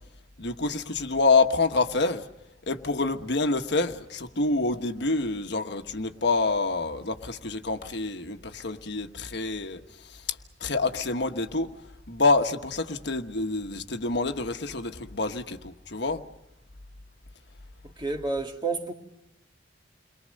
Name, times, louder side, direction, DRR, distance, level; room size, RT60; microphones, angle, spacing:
voice 1, 0.4-2.3 2.7-10.2 10.6-11.7 12.1-16.2, left 3 dB, 60° left, 1.4 m, -27 dB
voice 2, 17.8-18.9, right 3 dB, 25° right, 2.0 m, -30 dB
29.5 x 23.0 x 6.5 m
head